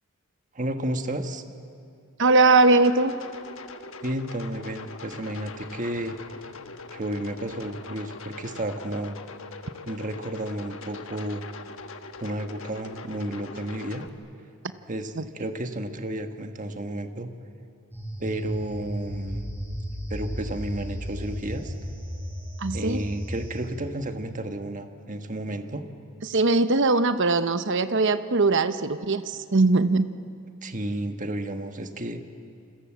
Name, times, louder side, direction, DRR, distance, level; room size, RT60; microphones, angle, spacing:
voice 1, 0.5-1.4 4.0-6.2 6.9-9.2 9.9-11.4 12.2-14.1 14.9-17.3 18.2-19.5 20.1-21.7 22.7-25.8 30.6-32.2, right 1 dB, 35° right, 6 dB, 1.5 m, -32 dB
voice 2, 2.2-3.1 15.2-15.3 22.6-23.0 26.3-29.2 29.5-30.1, right 3 dB, 60° right, 11 dB, 1.0 m, -20 dB
sound 1, 2.6-14.1, left 3 dB, 65° left, 1.4 m, -42 dB
sound 2, 17.9-23.6, equal, 10° right, 7.9 m, -34 dB
28.0 x 26.5 x 7.5 m, 2.4 s
head